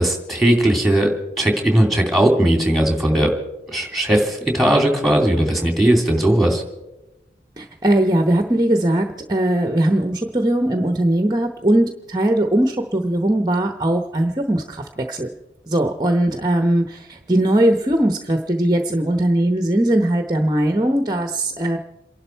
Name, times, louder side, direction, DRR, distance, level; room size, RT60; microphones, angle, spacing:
voice 1, 0.0-3.3 3.7-6.6, right 1 dB, ahead, 3 dB, 2.7 m, -18 dB
voice 2, 7.6-15.3 15.7-21.8, right 1 dB, 25° right, 6 dB, 0.9 m, -19 dB
28.0 x 11.5 x 4.5 m, 0.98 s
head